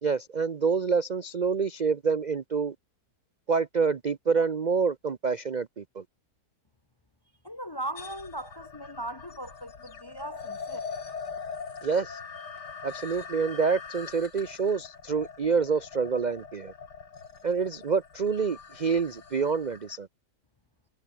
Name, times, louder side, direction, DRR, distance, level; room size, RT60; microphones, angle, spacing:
voice 1, 0.0-2.7 3.5-6.0 11.8-12.2 12.8-16.7 17.4-20.1, right 5 dB, 45° right, 0.5 m, -27 dB
voice 2, 7.4-10.8, right 1 dB, 35° left, 0.3 m, -38 dB
sound 1, 8.0-20.0, left 5 dB, 85° left, 3.0 m, -42 dB
omnidirectional pair, 1.8 m